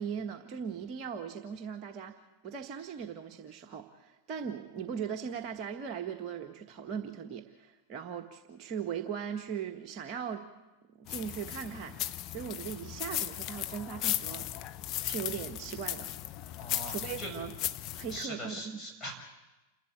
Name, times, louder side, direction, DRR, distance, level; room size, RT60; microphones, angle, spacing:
voice 1, 0.0-10.4 10.9-14.5 15.0-16.1 16.9-17.5 17.9-18.8, right 7 dB, 35° right, 4 dB, 1.4 m, -39 dB
sound 1, 11.1-18.2, left 13 dB, 40° left, 0.8 m, -36 dB
voice 2, 16.6-17.3 18.1-19.1, equal, 10° left, 0 dB, 7.1 m, -41 dB
28.5 x 12.5 x 8.6 m, 1.1 s
figure-of-eight pair, 90°, 0 cm